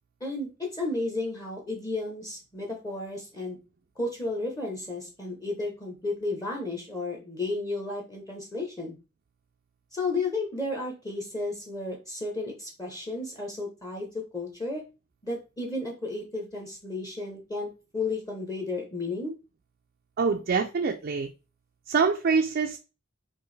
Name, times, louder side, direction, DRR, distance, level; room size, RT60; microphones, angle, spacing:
voice 1, 0.2-3.6 4.0-9.0 9.9-14.8 15.2-19.3, left 2 dB, 15° left, 0.8 m, -33 dB
voice 2, 20.2-21.3 21.9-22.8, right 5 dB, 45° right, 0.4 m, -25 dB
4.4 x 3.0 x 3.2 m
head